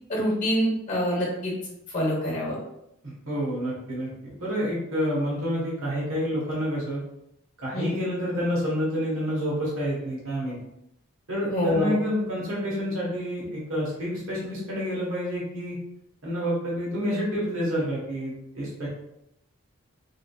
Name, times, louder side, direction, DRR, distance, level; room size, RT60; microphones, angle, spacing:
voice 1, 0.1-1.5 1.9-2.6 7.7-7.9 11.5-11.9, left 1 dB, 35° left, -3 dB, 1.2 m, -25 dB
voice 2, 3.0-7.0 7.6-10.6 11.3-15.8 16.2-18.9, equal, 75° right, -5 dB, 1.3 m, -28 dB
3.6 x 3.2 x 2.3 m, 0.82 s
head